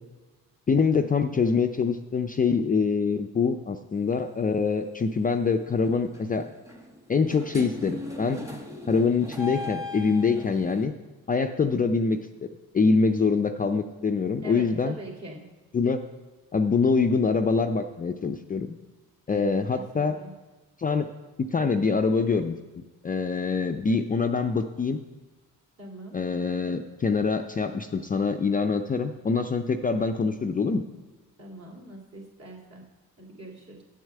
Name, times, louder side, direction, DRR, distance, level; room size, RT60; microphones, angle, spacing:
voice 1, 0.7-6.5 7.1-8.4 8.9-10.9 11.3-12.5 12.7-14.9 15.7-16.0 16.5-18.8 19.3-20.2 20.8-21.1 21.4-25.0 26.1-30.8, left 4 dB, 25° left, 6 dB, 0.4 m, -25 dB
sound 1, 3.9-4.2 5.1-5.4 5.7-10.8, left 2 dB, 10° right, 1.2 m, -39 dB
voice 2, 14.4-15.4 19.3-20.3 25.8-26.2 31.4-32.8 33.2-33.8, right 1 dB, 45° right, -1 dB, 2.5 m, -43 dB
9.0 x 4.6 x 7.5 m, 1.2 s
cardioid pair, 85°, 37 cm